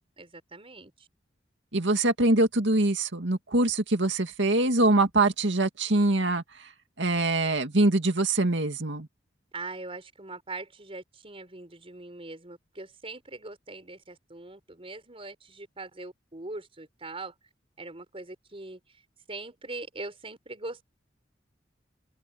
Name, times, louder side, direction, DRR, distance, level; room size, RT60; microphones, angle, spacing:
voice 1, 0.2-0.9 9.5-17.3 17.8-18.8 19.3-20.9, right 2 dB, 30° right, 4.7 m, -41 dB
voice 2, 1.7-6.7 7.0-9.1, right 2 dB, 75° right, 2.2 m, -24 dB
open air
head